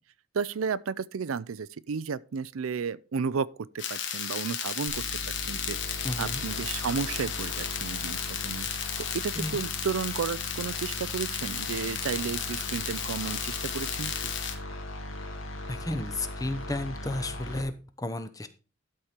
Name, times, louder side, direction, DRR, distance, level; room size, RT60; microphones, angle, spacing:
voice 1, 0.3-3.5 3.7-5.0 5.5-8.8 9.1-14.3, right 6 dB, 85° right, 0.5 m, -33 dB
sound 1, 3.8-14.5, left 8 dB, 60° left, 1.3 m, -34 dB
sound 2, 4.9-17.6, left 1 dB, 75° left, 2.4 m, -39 dB
voice 2, 6.0-6.4 9.4-9.6 15.7-18.5, left 1 dB, 15° left, 0.7 m, -33 dB
12.5 x 4.4 x 5.0 m
head